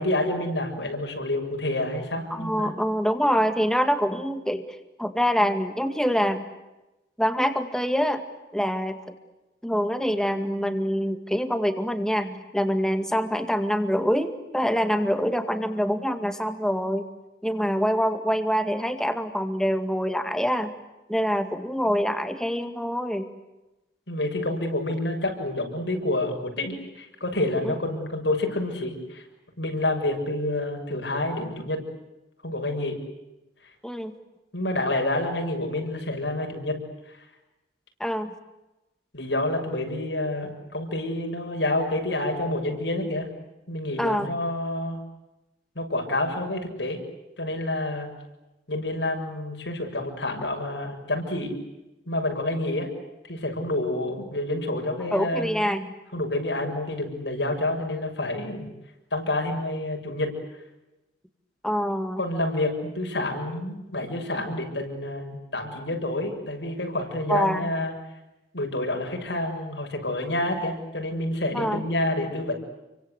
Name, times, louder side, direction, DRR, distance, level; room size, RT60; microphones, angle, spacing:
voice 1, 0.0-2.8 24.1-29.2 29.6-31.8 32.4-33.0 34.5-36.7 39.1-43.3 43.7-45.0 45.8-47.0 47.4-48.1 48.7-51.5 52.1-52.9 53.3-55.5 56.1-58.7 59.1-60.3 62.2-67.9 68.5-72.6, left 1 dB, 85° left, 3 dB, 7.0 m, -28 dB
voice 2, 2.3-4.7 5.0-6.4 7.2-8.2 8.5-9.2 9.6-17.1 17.4-20.7 21.1-23.3 27.6-27.8 33.8-34.1 38.0-38.3 44.0-44.3 55.1-55.9 61.6-62.2 67.3-67.7 71.5-71.8, equal, 5° left, 8 dB, 2.1 m, -25 dB
29.0 x 24.5 x 8.2 m, 0.99 s
head